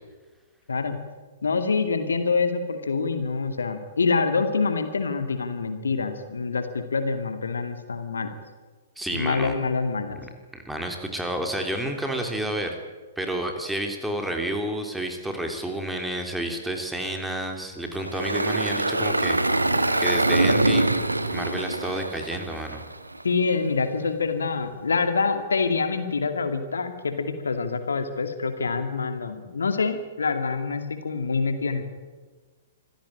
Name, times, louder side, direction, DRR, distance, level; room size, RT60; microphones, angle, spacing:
voice 1, 0.7-1.0 1.4-8.3 9.1-10.2 23.2-31.9, left 4 dB, 70° left, 8 dB, 2.4 m, -26 dB
voice 2, 9.0-9.5 10.2-12.8 13.2-19.6 20.0-20.9 21.3-22.8, right 1 dB, 5° right, 4 dB, 3.3 m, -30 dB
Engine, 17.9-23.2, right 2 dB, 80° right, 1.8 m, -24 dB
25.5 x 16.0 x 8.9 m, 1.4 s
figure-of-eight pair, 115°, 0 cm